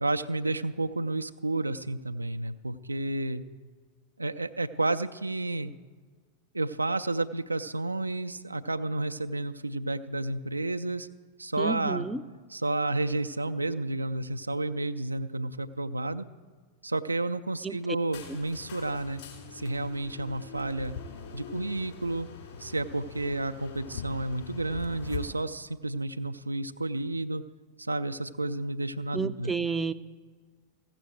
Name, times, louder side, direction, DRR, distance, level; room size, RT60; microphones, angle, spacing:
voice 1, 0.0-3.4 4.2-5.7 6.5-11.1 11.4-12.1 12.5-16.3 16.8-19.2 19.5-21.0 21.3-22.3 22.6-27.4 27.8-29.5, right 2 dB, 85° right, 7 dB, 0.4 m, -31 dB
voice 2, 11.6-12.2 17.6-18.0 29.1-29.9, right 4 dB, 10° right, 9 dB, 0.5 m, -31 dB
sound 1, 18.1-25.3, left 6 dB, 55° left, 2.9 m, -43 dB
15.5 x 6.8 x 7.6 m, 1.5 s
figure-of-eight pair, 90°, 0 cm